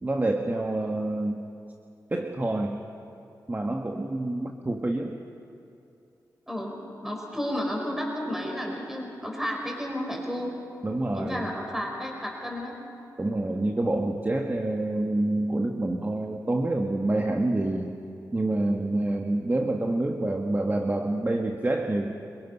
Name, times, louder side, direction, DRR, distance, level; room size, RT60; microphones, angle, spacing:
voice 1, 0.0-1.4 2.1-2.8 3.5-5.2 10.8-11.5 13.2-18.0 18.3-22.1, right 2 dB, 25° right, 3 dB, 1.4 m, -27 dB
voice 2, 6.5-10.6 11.1-12.8, equal, 5° right, 0 dB, 5.0 m, -32 dB
26.0 x 22.5 x 5.7 m, 2.7 s
cardioid pair, 60°, 7 cm